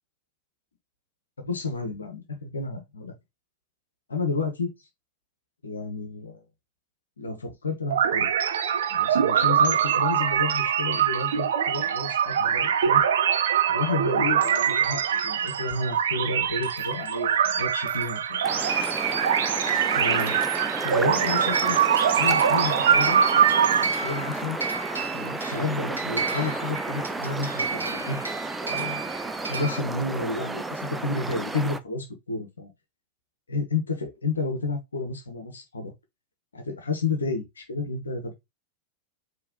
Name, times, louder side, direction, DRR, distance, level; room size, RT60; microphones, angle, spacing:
voice 1, 1.4-3.1 4.1-4.7 5.6-6.4 7.2-8.3 8.9-13.0 13.7-18.9 19.9-20.4 20.8-21.8 22.2-23.2 23.8-24.6 25.1-28.2 28.6-32.7 33.5-35.9 36.5-38.3, left 3 dB, 75° left, 1.0 m, -31 dB
sound 1, 7.9-23.8, right 8 dB, 60° right, 0.5 m, -23 dB
sound 2, 18.4-31.8, right 3 dB, 10° right, 0.4 m, -33 dB
sound 3, 21.5-29.8, right 4 dB, 80° right, 1.0 m, -33 dB
4.5 x 3.0 x 3.7 m
figure-of-eight pair, 90°, 0 cm